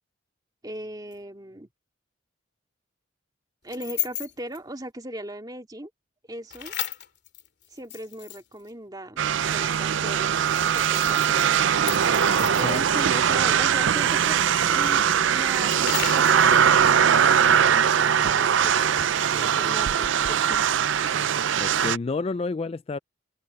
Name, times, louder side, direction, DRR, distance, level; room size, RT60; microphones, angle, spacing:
voice 1, 0.6-1.7 3.6-5.9 6.3-6.7 7.7-9.2 9.5-11.5 12.6-14.4 14.7-19.0 19.3-20.8, right 1 dB, 20° right, 2.2 m, -38 dB
sound 1, 1.1-1.2 3.7-4.6 6.5-8.7 10.3-13.0 14.6-16.6, left 12 dB, 55° left, 2.6 m, -35 dB
sound 2, 9.2-22.0, right 8 dB, 65° right, 0.5 m, -21 dB
voice 2, 12.4-12.8 21.6-23.0, left 3 dB, 30° left, 0.3 m, -30 dB
head